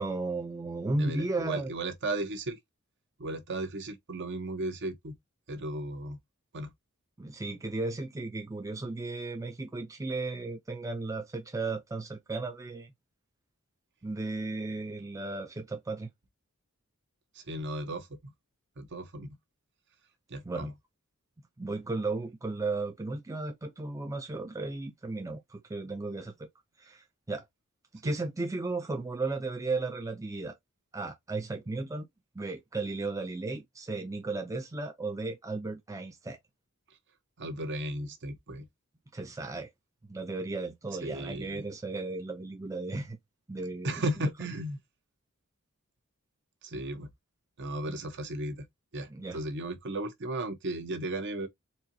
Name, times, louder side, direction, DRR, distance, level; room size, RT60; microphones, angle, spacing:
voice 1, 0.0-1.7 7.2-12.9 14.0-16.1 20.4-20.7 21.6-26.5 26.8-27.4 27.9-30.5 30.9-32.1 32.4-36.4 39.1-39.7 40.1-43.2 43.5-43.9 47.9-48.0 49.1-49.4, right 3 dB, 15° right, 0.5 m, -35 dB
voice 2, 1.0-2.6 3.2-5.2 5.5-6.2 6.5-6.7 17.3-18.3 18.8-19.4 20.3-20.7 28.0-28.1 37.4-38.7 41.0-41.7 43.8-44.8 46.6-47.1 47.6-48.7 48.9-51.5, right 1 dB, 55° right, 0.9 m, -35 dB
4.3 x 2.7 x 2.6 m
head